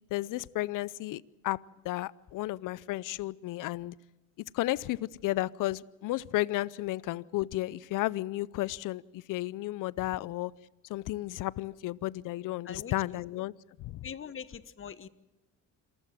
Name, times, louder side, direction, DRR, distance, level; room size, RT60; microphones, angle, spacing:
voice 1, 0.1-4.0 4.5-10.5 10.9-13.5 13.8-14.1, left 17 dB, 60° left, 22 dB, 0.6 m, -33 dB
voice 2, 12.6-13.2 14.0-15.1, left 7 dB, 35° left, 15 dB, 1.0 m, -42 dB
27.0 x 14.5 x 7.5 m, 1.0 s
supercardioid pair, 80°, 37 cm